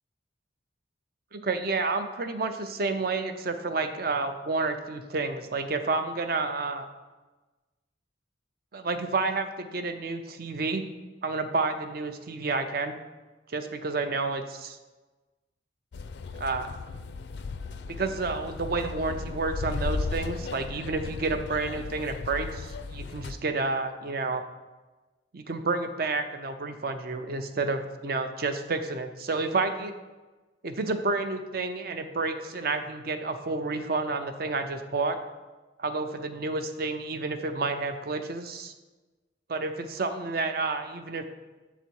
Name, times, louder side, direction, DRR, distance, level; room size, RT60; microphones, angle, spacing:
voice 1, 1.3-6.9 8.7-10.9 11.2-13.0 13.5-14.8 16.3-16.8 17.9-24.4 25.3-29.9 30.6-35.2 35.8-38.7 39.5-41.2, right 3 dB, 50° right, 8 dB, 0.5 m, -30 dB
sound 1, 15.9-23.3, left 4 dB, 60° left, 0.4 m, -36 dB
7.2 x 4.0 x 4.6 m, 1.2 s
head